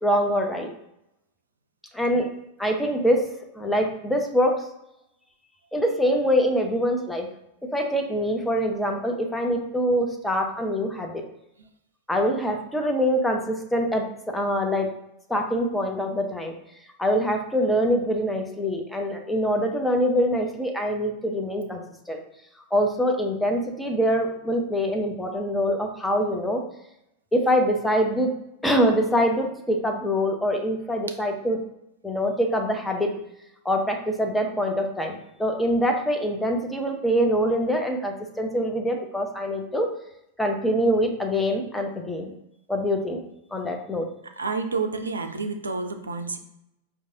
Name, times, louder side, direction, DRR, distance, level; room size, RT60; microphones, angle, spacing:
voice 1, 0.0-0.7 1.9-2.3 2.6-3.2 3.6-4.5 5.7-7.3 7.7-11.2 12.1-14.9 15.3-16.5 17.0-22.2 22.7-26.6 27.3-28.3 28.6-31.6 32.0-33.1 33.6-39.9 40.4-42.3 42.7-43.2 43.5-44.1, equal, 5° left, 2 dB, 0.6 m, -24 dB
voice 2, 44.4-46.4, right 4 dB, 75° right, 6 dB, 0.4 m, -29 dB
4.6 x 2.6 x 2.6 m, 0.83 s
figure-of-eight pair, 90°, 0 cm